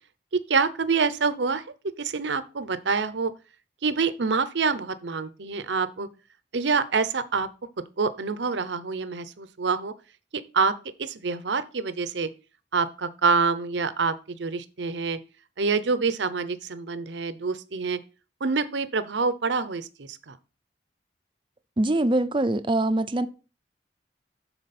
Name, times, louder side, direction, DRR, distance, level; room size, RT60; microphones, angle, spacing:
voice 1, 0.3-1.6 2.0-3.3 3.8-6.1 6.5-7.5 8.0-9.9 10.3-10.7 11.0-12.3 12.7-15.2 15.6-18.0 18.4-20.4, right 4 dB, 75° right, 0.7 m, -26 dB
voice 2, 21.8-23.3, right 1 dB, 25° right, 0.5 m, -23 dB
12.0 x 4.3 x 4.2 m
head